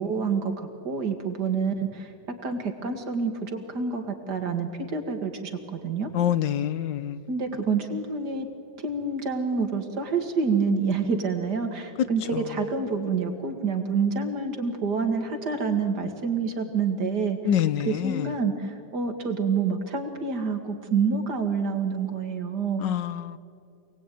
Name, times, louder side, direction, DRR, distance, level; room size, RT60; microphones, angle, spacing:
voice 1, 0.0-2.1 2.4-6.1 7.3-8.5 8.8-17.4 17.9-22.8, right 5 dB, 65° right, 2.6 m, -27 dB
voice 2, 6.1-7.2 17.4-18.3 22.8-23.4, left 10 dB, 80° left, 1.5 m, -26 dB
27.5 x 19.0 x 9.3 m
omnidirectional pair, 1.9 m